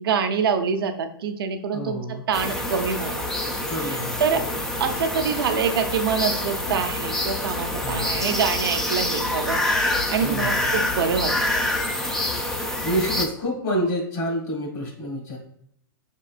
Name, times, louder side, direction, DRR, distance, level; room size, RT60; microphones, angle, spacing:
voice 1, 0.0-3.3 3.8-4.4 4.8-11.3, right 6 dB, 75° right, 7 dB, 0.8 m, -26 dB
voice 2, 1.7-2.2 3.7-4.6 7.8-8.3 10.2-10.6 12.5-15.4, equal, 45° left, -1 dB, 1.6 m, -29 dB
sound 1, 2.3-13.3, left 1 dB, 5° left, 0.3 m, -26 dB
5.2 x 3.7 x 2.4 m, 0.70 s
hypercardioid pair, 150°, 12 cm